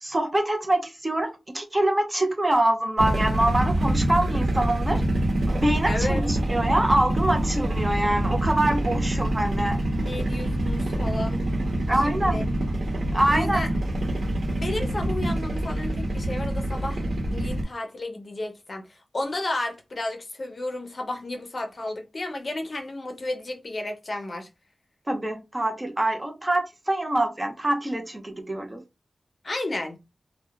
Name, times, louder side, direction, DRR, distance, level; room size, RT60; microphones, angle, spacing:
voice 1, 0.0-5.0 5.5-9.8 11.9-12.4 13.1-13.7 25.1-28.8, right 1 dB, 20° right, 0.6 m, -25 dB
sound 1, 3.0-17.6, right 1 dB, 90° right, 0.9 m, -26 dB
voice 2, 5.8-6.2 10.0-11.4 12.0-12.4 13.3-13.7 14.5-17.0 17.3-18.9 19.1-24.5 29.4-30.0, left 2 dB, 50° left, 0.6 m, -32 dB
2.7 x 2.1 x 2.3 m
wide cardioid pair, 95°, 0 cm